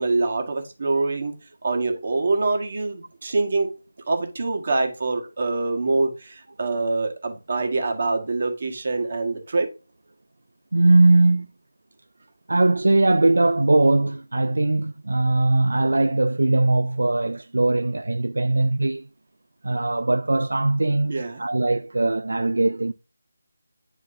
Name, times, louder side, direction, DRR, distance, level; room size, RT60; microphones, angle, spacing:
voice 1, 0.0-1.3 1.6-3.7 4.1-9.7 21.1-21.4, right 3 dB, 50° right, 1.5 m, -25 dB
voice 2, 10.7-11.5 12.5-19.1 19.6-22.9, right 2 dB, 80° right, 0.3 m, -20 dB
8.8 x 4.3 x 2.6 m
figure-of-eight pair, 165°, 0 cm